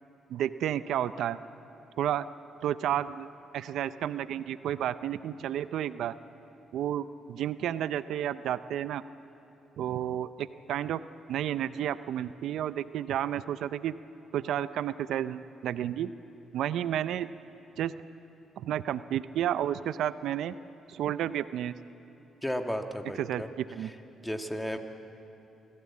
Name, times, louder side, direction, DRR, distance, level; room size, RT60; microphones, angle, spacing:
voice 1, 0.3-1.4 2.0-2.3 2.6-3.3 3.5-6.1 6.7-9.0 9.8-11.0 11.3-14.0 14.3-16.1 16.5-17.3 17.8-17.9 18.6-20.5 20.9-21.7 23.2-23.4 23.7-23.9, right 11 dB, 80° right, 14 dB, 0.5 m, -31 dB
voice 2, 22.4-23.5 23.8-23.9 24.2-24.8, equal, 10° left, 5 dB, 1.6 m, -33 dB
25.0 x 16.0 x 8.5 m, 3.0 s
cardioid pair, 90°, 0 cm